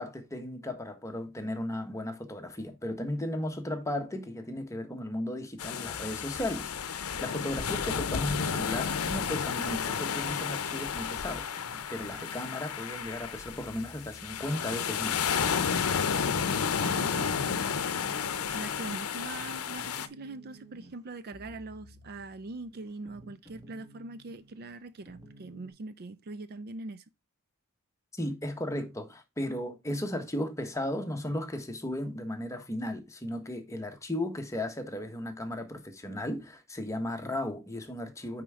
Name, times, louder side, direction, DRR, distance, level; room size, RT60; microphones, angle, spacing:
voice 1, 0.0-15.3 28.1-38.4, left 1 dB, 15° left, 1.2 m, -35 dB
sound 1, 5.6-20.1, left 6 dB, 80° left, 0.7 m, -32 dB
sound 2, 5.8-25.7, equal, 15° right, 1.6 m, -54 dB
voice 2, 16.8-17.4 18.5-27.1, right 2 dB, 45° right, 0.5 m, -42 dB
9.3 x 4.5 x 3.6 m
head